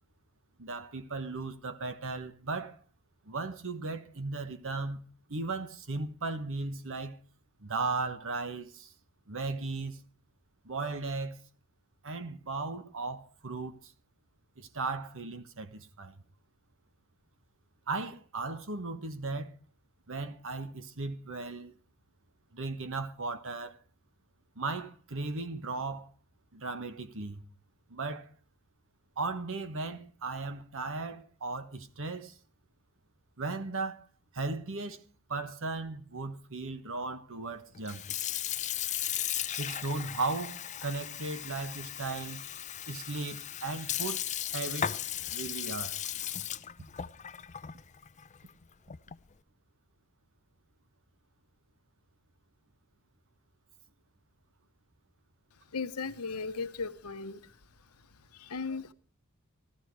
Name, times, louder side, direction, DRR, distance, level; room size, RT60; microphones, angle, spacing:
voice 1, 0.6-2.8 3.3-5.0 5.3-7.2 7.6-8.9 9.3-10.0 10.6-11.4 12.0-13.9 14.6-16.1 17.9-19.6 20.1-21.7 22.5-23.8 24.6-26.1 26.5-27.4 27.9-28.3 29.2-32.4 33.4-34.1 34.3-35.0 35.3-38.0 39.6-42.4 42.9-44.2 44.5-45.0 45.3-46.0, right 3 dB, 60° right, 1.3 m, -36 dB
Sink (filling or washing) / Fill (with liquid), 37.7-49.3, left 10 dB, 35° left, 0.6 m, -36 dB
voice 2, 55.7-57.5 58.3-58.9, left 4 dB, 75° left, 1.0 m, -36 dB
14.5 x 13.5 x 4.7 m
head